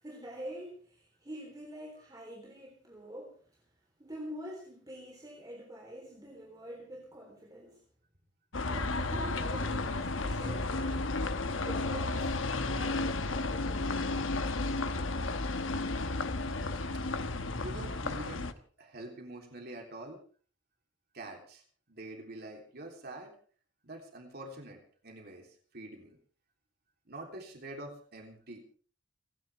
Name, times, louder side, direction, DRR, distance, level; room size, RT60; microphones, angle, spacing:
voice 1, 0.0-3.4 4.0-7.8 8.6-11.0 11.5-12.4 12.6-13.9, equal, 20° right, -1 dB, 3.7 m, -46 dB
sound 1, 8.5-18.5, left 2 dB, 85° left, 1.2 m, -33 dB
voice 2, 17.6-18.5 18.8-20.2 21.1-23.3 23.8-26.2 27.1-28.8, right 1 dB, 55° right, 1 dB, 3.4 m, -46 dB
29.5 x 10.5 x 3.5 m, 0.43 s
head